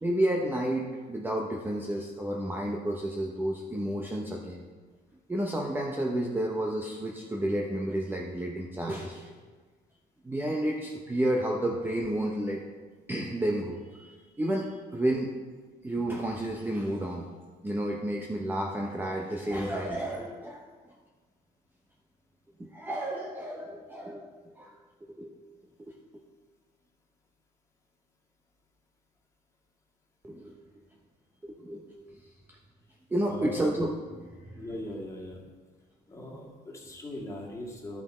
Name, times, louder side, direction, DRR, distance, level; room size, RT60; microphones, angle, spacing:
voice 1, 0.0-4.6 5.3-9.3 10.2-12.6 13.1-15.3 15.8-17.3 17.6-20.7 22.6-25.3 25.8-25.9 30.2-30.6 31.4-32.2 33.1-33.9 34.2-34.6, right 1 dB, 10° right, 0 dB, 0.8 m, -31 dB
voice 2, 33.3-33.7 34.6-35.4 36.1-38.0, left 1 dB, 15° left, -2 dB, 2.1 m, -39 dB
11.5 x 5.9 x 4.4 m, 1.4 s
cardioid pair, 110°, 17 cm